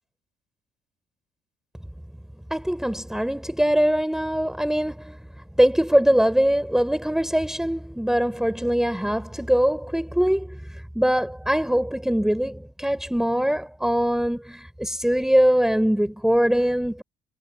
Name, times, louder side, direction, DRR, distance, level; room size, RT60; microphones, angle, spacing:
voice 1, 2.5-5.2 5.6-17.0, equal, 5° right, 3.9 m, -22 dB
supercardioid pair, 80°, 17 cm